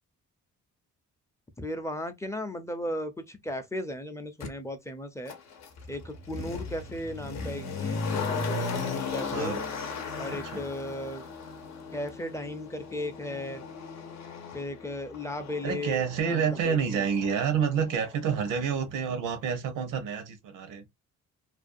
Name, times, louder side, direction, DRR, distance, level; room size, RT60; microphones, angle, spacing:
voice 1, 1.6-5.3 5.9-9.6 10.2-11.2 11.9-13.6 14.5-17.0, left 1 dB, 10° left, 0.5 m, -36 dB
Motor vehicle (road), 4.4-4.5 5.3-18.2 18.5-18.6, left 4 dB, 65° left, 0.7 m, -37 dB
voice 2, 10.3-10.6 15.6-20.8, right 7 dB, 90° right, 0.8 m, -28 dB
2.5 x 2.2 x 2.5 m
cardioid pair, 90°, 30 cm